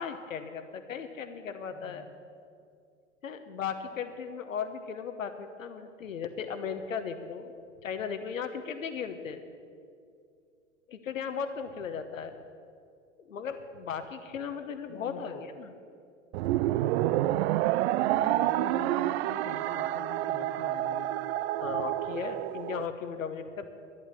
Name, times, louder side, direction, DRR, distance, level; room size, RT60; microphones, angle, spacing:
voice 1, 0.0-2.0 3.2-7.5 7.8-9.4 10.9-12.3 13.3-15.7 21.6-23.7, left 6 dB, 90° left, 8 dB, 1.1 m, -36 dB
voice 2, 1.7-2.1 14.9-15.5 18.1-21.1, left 5 dB, 50° left, -1 dB, 1.5 m, -45 dB
sound 1, 16.3-22.9, right 14 dB, 55° right, 0.5 m, -28 dB
12.0 x 11.0 x 8.3 m, 2.4 s
hypercardioid pair, 110°, 38 cm